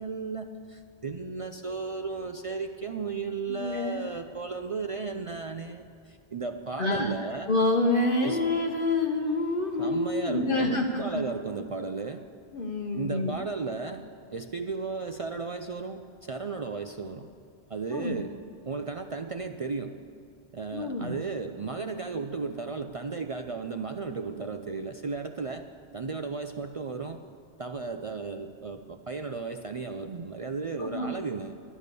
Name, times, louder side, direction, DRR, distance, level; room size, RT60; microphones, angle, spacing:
voice 1, 0.0-7.5 8.2-8.4 9.8-12.2 12.9-14.0 14.3-17.3 17.7-18.3 18.7-20.0 20.5-25.7 25.9-27.2 27.6-31.5, right 4 dB, 50° right, 6 dB, 0.4 m, -34 dB
voice 2, 3.5-4.0 6.8-7.1 7.5-11.3 12.5-13.4 17.9-18.2 20.7-21.2 30.8-31.1, left 2 dB, 55° left, 1 dB, 0.9 m, -27 dB
12.0 x 11.0 x 6.7 m, 2.4 s
omnidirectional pair, 1.1 m